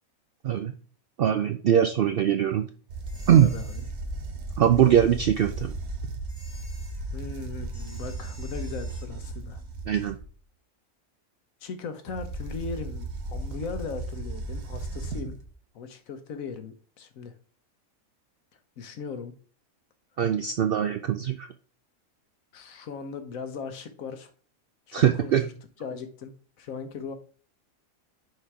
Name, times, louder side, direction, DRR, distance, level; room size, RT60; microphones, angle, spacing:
voice 1, 0.4-0.7 1.2-2.7 3.3-3.5 4.6-5.7 9.9-10.2 20.2-21.5 24.9-25.4, right 9 dB, 70° right, 7 dB, 0.5 m, -22 dB
sound 1, 2.9-10.3 12.1-15.5, right 3 dB, 85° right, 1.4 m, -36 dB
sound 2, 3.1-3.9 6.3-7.0 7.7-9.1, left 1 dB, 25° left, 1.3 m, -52 dB
voice 2, 3.4-3.8 7.1-9.6 11.6-15.4 15.7-17.3 18.8-19.3 22.5-24.3 24.9-25.4 25.8-27.1, left 5 dB, 75° left, 9 dB, 1.3 m, -38 dB
6.4 x 3.9 x 4.7 m, 0.42 s
omnidirectional pair, 1.5 m